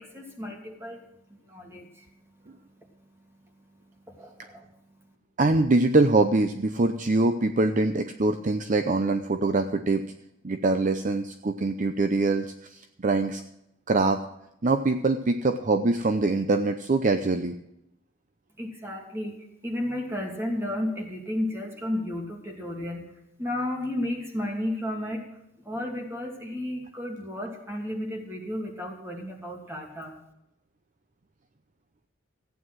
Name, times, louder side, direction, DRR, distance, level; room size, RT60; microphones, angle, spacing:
voice 1, 0.0-5.1 18.6-23.0 23.4-25.3 25.5-30.2, left 1 dB, 15° right, 1 dB, 2.7 m, -34 dB
voice 2, 5.4-10.1 10.4-13.4 13.9-14.2 14.6-17.6, right 2 dB, 40° right, 8 dB, 0.6 m, -24 dB
15.0 x 9.3 x 6.3 m, 0.82 s
head